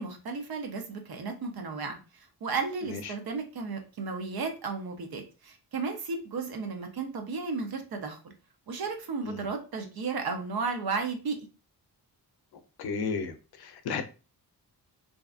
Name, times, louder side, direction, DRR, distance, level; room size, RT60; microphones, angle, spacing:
voice 1, 0.0-8.2 8.7-11.4, right 4 dB, 65° right, 0.7 m, -34 dB
voice 2, 2.8-3.1 9.2-9.5 12.8-14.0, left 5 dB, 70° left, 0.5 m, -34 dB
2.7 x 2.3 x 2.4 m
wide cardioid pair, 155°, 40 cm